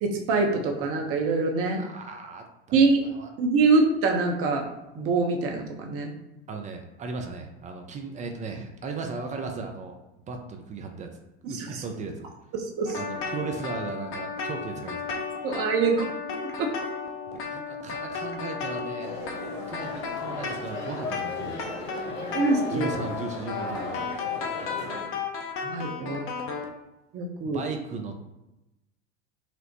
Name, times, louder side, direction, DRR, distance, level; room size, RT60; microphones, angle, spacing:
voice 1, 0.0-1.8 2.7-3.0 3.4-4.7 4.9-6.1 11.4-11.8 12.8-13.0 15.4-16.1 16.6-16.7 22.3-22.9 25.6-26.3 27.1-27.6, right 3 dB, 40° right, 2 dB, 0.8 m, -24 dB
voice 2, 1.8-2.4 3.1-3.3 6.5-10.0 10.3-12.3 13.0-15.1 17.3-19.1 19.4-21.7 22.7-24.0 24.6-24.7 27.4-28.2, right 4 dB, 20° right, 4 dB, 0.4 m, -36 dB
sound 1, 12.9-26.7, left 5 dB, 35° left, 0.6 m, -34 dB
sound 2, 19.0-25.0, left 2 dB, 60° left, 1.1 m, -37 dB
4.3 x 2.0 x 2.8 m, 0.94 s
hypercardioid pair, 80°, 35 cm